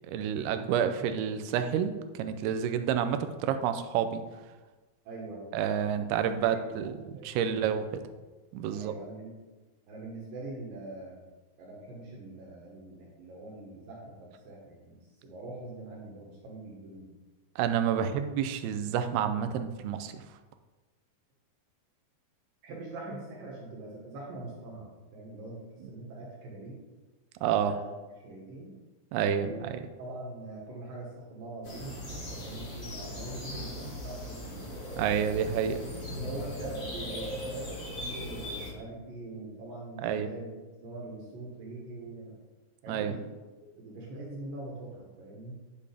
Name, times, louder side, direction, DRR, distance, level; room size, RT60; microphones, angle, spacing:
voice 1, 0.1-4.2 5.5-8.0 8.5-8.9 17.6-20.2 27.4-27.8 29.1-29.8 35.0-35.8 40.0-40.3 42.9-43.2, right 8 dB, 90° right, 9 dB, 2.6 m, -29 dB
voice 2, 5.0-5.5 6.5-7.6 8.7-9.4 9.9-11.2 11.6-17.1 17.9-18.1 22.6-26.8 27.6-27.9 28.2-28.7 29.3-29.7 30.0-34.8 35.8-40.6 40.8-42.4 42.8-43.3 43.6-45.6, right 2 dB, 70° right, -3 dB, 3.0 m, -43 dB
sound 1, 31.6-38.7, left 1 dB, 55° left, 0.9 m, -39 dB
10.5 x 6.8 x 3.4 m, 1.2 s
omnidirectional pair, 4.4 m